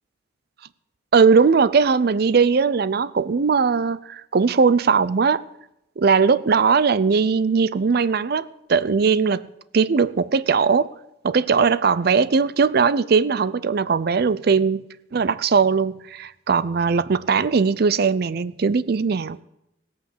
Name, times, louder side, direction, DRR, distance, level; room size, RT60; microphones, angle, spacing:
voice 1, 1.1-5.4 6.0-9.5 9.7-10.9 11.2-14.8 15.1-19.4, right 5 dB, 55° right, 0.5 m, -19 dB
17.0 x 8.6 x 7.2 m
head